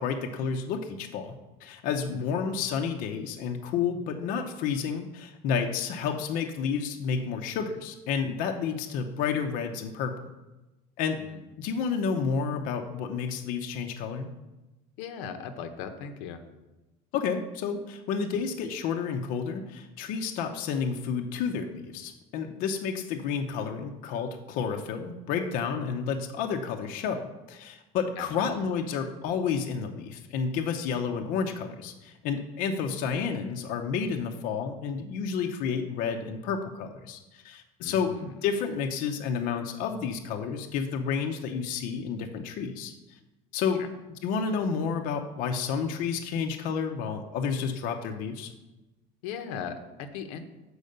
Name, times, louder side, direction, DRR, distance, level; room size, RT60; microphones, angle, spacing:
voice 1, 0.0-10.3 11.0-11.3 11.6-14.3 17.1-27.2 27.5-42.9 43.5-43.8 44.2-48.5, left 6 dB, 60° left, 4 dB, 0.7 m, -30 dB
voice 2, 15.0-16.4 28.2-28.5 37.8-38.4 43.8-43.9 49.2-50.4, left 7 dB, 90° left, 7 dB, 0.9 m, -38 dB
6.5 x 4.7 x 6.6 m, 1.1 s
cardioid pair, 150°, 16 cm